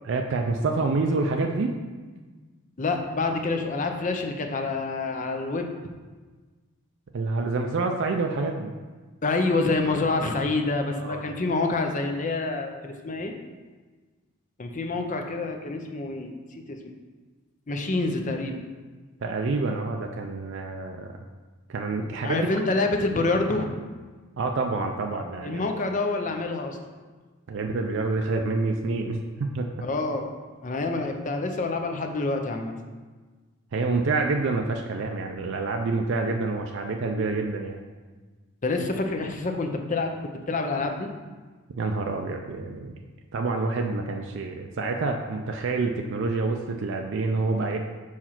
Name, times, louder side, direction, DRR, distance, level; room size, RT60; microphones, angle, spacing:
voice 1, 0.0-1.7 7.1-8.7 11.0-11.3 19.2-21.1 21.7-22.5 24.4-25.6 27.5-29.7 33.7-37.8 41.8-43.0 43.3-47.8, right 3 dB, 55° right, 3 dB, 0.4 m, -27 dB
voice 2, 2.8-5.7 9.2-13.3 14.6-16.9 17.7-18.6 22.2-23.7 25.4-26.8 29.8-30.3 30.6-32.7 38.6-40.1 40.5-41.1, left 3 dB, 35° left, 4 dB, 0.6 m, -27 dB
4.7 x 4.3 x 5.8 m, 1.4 s
head